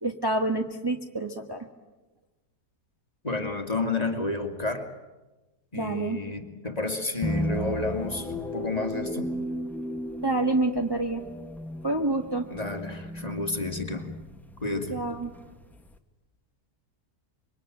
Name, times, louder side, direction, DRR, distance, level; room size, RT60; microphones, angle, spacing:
voice 1, 0.0-1.6 5.7-6.2 10.2-11.2 11.8-12.5 14.9-15.3, right 2 dB, 15° right, 3 dB, 1.5 m, -27 dB
voice 2, 3.2-4.9 5.7-9.3 12.5-14.1 14.6-15.0, left 3 dB, 25° left, 5 dB, 2.4 m, -31 dB
sound 1, 7.2-16.0, equal, ahead, 1.4 m, -35 dB
26.5 x 24.0 x 9.2 m, 1.1 s
omnidirectional pair, 1.7 m